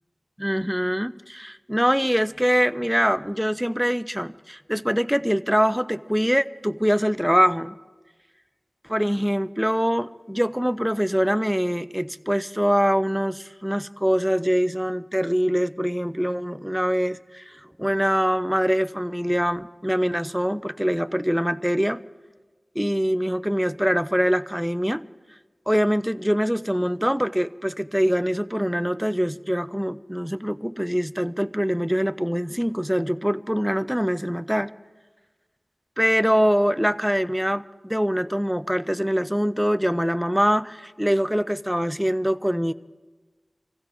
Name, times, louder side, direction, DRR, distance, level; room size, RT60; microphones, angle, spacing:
voice 1, 0.4-7.8 8.9-22.0 22.8-25.0 25.7-34.7 36.0-42.7, equal, 5° right, 12 dB, 0.4 m, -23 dB
26.0 x 15.5 x 3.0 m, 1.3 s
wide cardioid pair, 65°, 0 cm